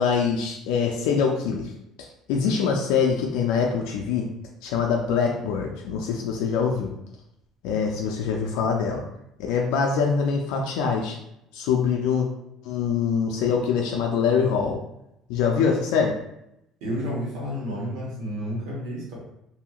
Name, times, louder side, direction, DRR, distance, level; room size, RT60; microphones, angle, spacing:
voice 1, 0.0-1.7 2.0-4.3 4.6-6.9 7.6-9.0 9.4-11.2 11.5-12.3 12.6-14.8 15.3-16.1, left 6 dB, 90° left, 1 dB, 0.3 m, -24 dB
voice 2, 16.8-19.1, equal, 80° right, -4 dB, 1.2 m, -30 dB
2.8 x 2.7 x 2.4 m, 0.81 s
cardioid pair, 135°, 0 cm